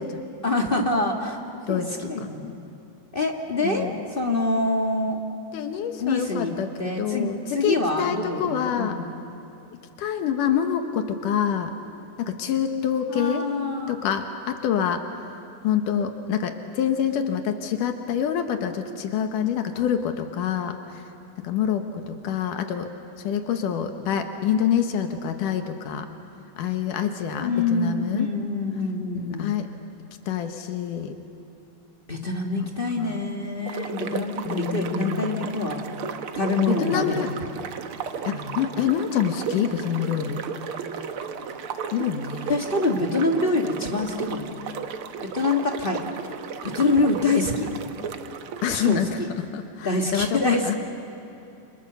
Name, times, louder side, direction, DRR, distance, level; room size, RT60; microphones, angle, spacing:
voice 1, 0.4-2.6 3.1-5.2 6.0-6.5 6.8-9.1 13.1-14.0 27.4-29.5 32.1-35.9 36.3-37.4 38.2-38.6 42.5-44.6 45.2-46.0 46.6-47.7 48.7-49.3 49.8-50.7, left 2 dB, 30° left, 1 dB, 1.1 m, -26 dB
voice 2, 3.6-4.1 5.5-9.0 10.0-11.7 12.2-13.5 13.9-15.0 15.6-21.0 21.4-22.9 23.2-26.1 26.6-28.3 29.3-29.7 30.3-31.1 32.6-33.3 34.5-35.5 36.7-37.3 38.3-40.4 41.9-42.5 46.3-46.4 48.6-49.2 49.5-50.8, left 8 dB, 85° left, 6 dB, 2.8 m, -26 dB
sound 1, 33.7-49.0, right 7 dB, 65° right, 1.4 m, -34 dB
29.0 x 27.5 x 6.9 m, 2.8 s
omnidirectional pair, 3.6 m